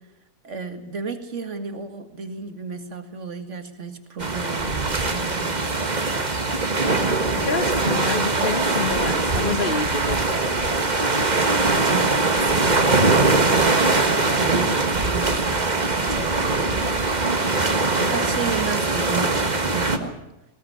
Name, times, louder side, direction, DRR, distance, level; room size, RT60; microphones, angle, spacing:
voice 1, 0.4-6.0 11.7-16.7 17.8-20.2, right 4 dB, 50° right, 8 dB, 2.2 m, -33 dB
sound 1, 4.2-20.0, right 3 dB, 30° right, 1.6 m, -21 dB
voice 2, 7.3-10.2, left 4 dB, 35° left, 12 dB, 1.2 m, -28 dB
19.5 x 18.0 x 8.7 m, 0.95 s
omnidirectional pair, 1.7 m